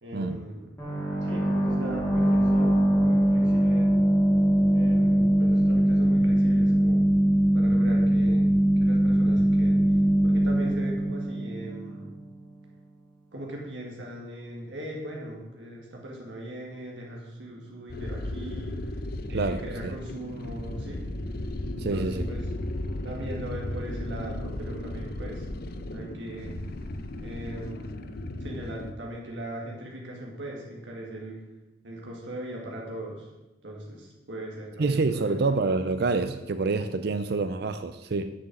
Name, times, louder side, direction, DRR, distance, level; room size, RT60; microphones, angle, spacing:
voice 1, 0.0-0.7 1.2-4.0 4.7-7.1 7.5-8.5 8.8-10.0 10.2-12.1 13.3-18.9 19.3-21.1 21.7-22.5 23.0-25.5 25.9-26.5 27.2-28.0 28.4-31.4 31.8-33.3 33.6-35.5, right 1 dB, 80° right, -1 dB, 2.0 m, -39 dB
sound 1, 0.8-12.2, right 1 dB, 15° left, 3.7 m, -22 dB
sound 2, 17.9-28.9, left 1 dB, 55° left, 0.7 m, -35 dB
voice 2, 19.3-19.9 21.8-22.3 34.8-38.3, right 3 dB, 60° right, 10 dB, 0.5 m, -27 dB
7.8 x 6.5 x 7.2 m, 1.0 s
head